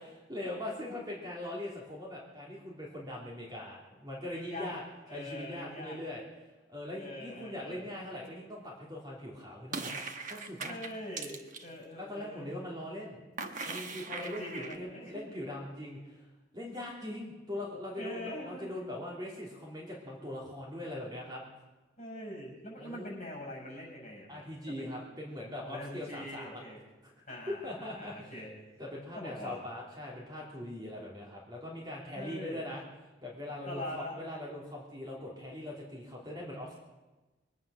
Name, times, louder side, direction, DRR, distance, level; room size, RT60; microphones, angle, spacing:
voice 1, 0.0-4.8 5.1-6.2 6.7-10.0 10.3-10.8 11.9-13.2 13.6-16.3 16.5-21.4 22.8-23.1 24.3-26.6 27.0-27.1 27.5-28.3 28.8-32.8 33.2-36.8, left 1 dB, 20° right, -4 dB, 2.9 m, -41 dB
voice 2, 4.3-4.7 5.1-6.0 7.0-7.9 10.6-12.5 14.2-15.3 18.0-18.9 22.0-24.4 24.8-24.9 25.7-26.8 27.3-28.5 29.1-29.6 32.1-32.6 33.7-34.2, left 1 dB, 35° left, -2 dB, 7.0 m, -43 dB
sound 1, 9.7-11.7 13.4-14.8, right 4 dB, 40° right, 1.1 m, -40 dB
23.0 x 9.6 x 6.3 m, 1.1 s
head